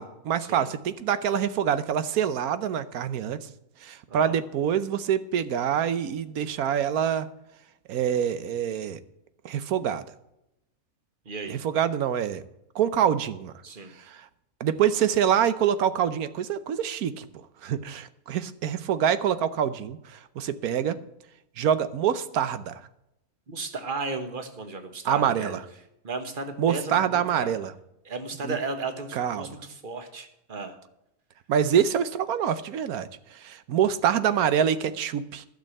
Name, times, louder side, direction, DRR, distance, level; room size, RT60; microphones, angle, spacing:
voice 1, 0.0-3.5 3.8-7.3 7.9-9.0 9.4-10.0 11.5-12.4 12.7-13.5 14.1-14.2 14.6-17.3 17.6-21.0 21.6-22.8 25.0-25.6 26.6-27.7 28.4-28.6 29.1-29.5 31.5-35.5, right 9 dB, 90° right, 13 dB, 1.3 m, -25 dB
voice 2, 11.2-11.6 13.6-14.0 23.5-25.6 26.0-27.7 28.0-30.8, right 3 dB, 35° right, 7 dB, 1.5 m, -35 dB
12.0 x 6.5 x 7.7 m, 0.85 s
omnidirectional pair, 1.5 m